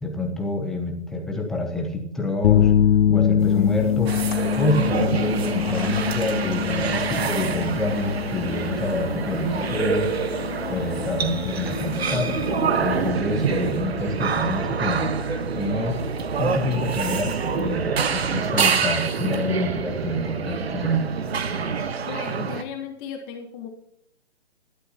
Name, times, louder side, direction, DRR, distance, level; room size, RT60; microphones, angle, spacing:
voice 1, 0.0-2.7 3.1-4.1 4.6-10.1 10.7-12.4 12.8-15.1 15.5-16.0 16.3-21.1, left 1 dB, ahead, 2 dB, 0.5 m, -27 dB
sound 1, 2.4-18.4, left 9 dB, 80° left, 0.5 m, -26 dB
sound 2, 3.4-13.1, left 6 dB, 45° left, 2.3 m, -36 dB
sound 3, 4.1-22.6, right 6 dB, 65° right, 1.2 m, -26 dB
voice 2, 22.1-23.7, left 7 dB, 20° left, 4 dB, 1.1 m, -35 dB
16.0 x 11.5 x 2.8 m, 0.68 s
hypercardioid pair, 145°, 33 cm